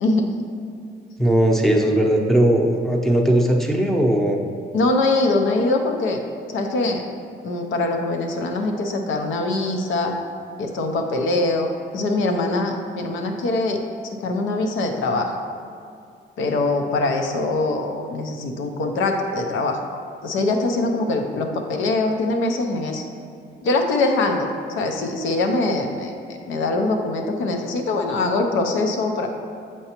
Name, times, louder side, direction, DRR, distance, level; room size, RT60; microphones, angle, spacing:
voice 1, 0.0-0.3 4.7-6.2 6.5-7.0 7.4-10.1 10.6-13.8 14.2-15.4 16.4-19.8 20.2-23.0 23.6-24.5 24.8-29.3, left 2 dB, 80° left, 4 dB, 0.7 m, -23 dB
voice 2, 1.2-4.4, right 1 dB, ahead, 1 dB, 0.7 m, -18 dB
7.8 x 4.5 x 2.9 m, 2.4 s
cardioid pair, 90°, 20 cm